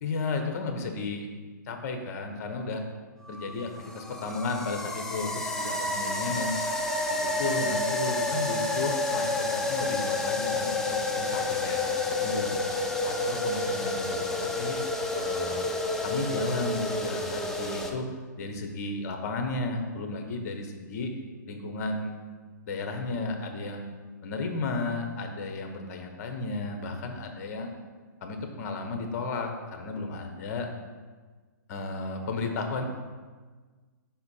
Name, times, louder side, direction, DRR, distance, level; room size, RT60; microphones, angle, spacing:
voice 1, 0.0-1.3 1.7-2.8 3.3-6.5 7.1-12.6 13.0-14.8 15.1-15.7 16.0-21.1 21.5-22.1 22.7-23.8 24.2-27.7 28.2-30.7 31.7-32.8, left 3 dB, 50° left, 4 dB, 0.9 m, -33 dB
sound 1, 3.2-17.9, left 2 dB, 5° left, 0.4 m, -30 dB
5.3 x 4.2 x 4.2 m, 1.4 s
hypercardioid pair, 135°, 10 cm